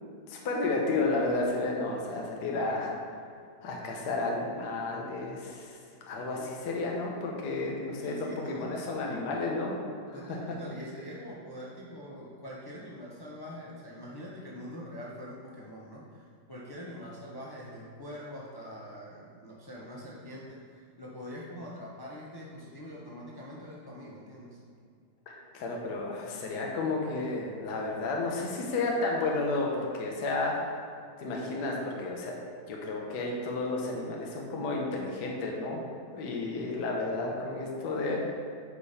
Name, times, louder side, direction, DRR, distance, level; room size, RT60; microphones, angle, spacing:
voice 1, 0.3-2.9 3.6-5.8 6.1-9.8 10.3-10.4 25.3-30.7 31.2-32.3 32.7-35.8 36.1-38.3, left 2 dB, 65° left, -1 dB, 1.5 m, -32 dB
voice 2, 8.0-8.9 10.1-24.6, equal, 35° left, -5 dB, 0.3 m, -44 dB
9.5 x 5.2 x 4.2 m, 2.3 s
omnidirectional pair, 2.0 m